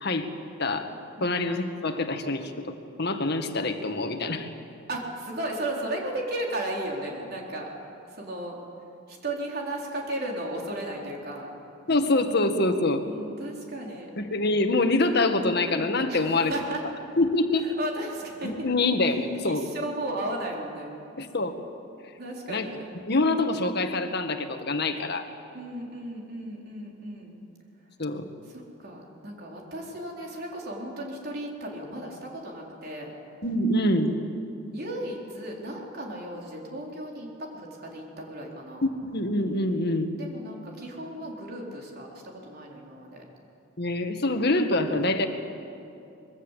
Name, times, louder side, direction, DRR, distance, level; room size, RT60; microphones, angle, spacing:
voice 1, 0.0-0.3 0.6-0.9 1.2-2.5 3.0-4.5 11.9-13.0 14.2-16.5 17.2-17.7 18.4-19.6 21.2-21.6 22.5-22.7 23.1-25.2 28.0-28.2 33.4-34.1 38.8-40.1 43.8-45.3, left 2 dB, 55° left, 6 dB, 1.8 m, -25 dB
voice 2, 4.9-7.7 8.1-8.6 9.1-11.5 13.0-14.1 16.1-16.8 17.5-18.7 19.0-19.1 19.4-20.9 22.2-22.9 25.5-27.4 28.5-33.1 34.7-38.9 40.1-43.2, right 1 dB, 55° right, -1 dB, 4.0 m, -35 dB
24.5 x 22.0 x 8.3 m, 2.6 s
head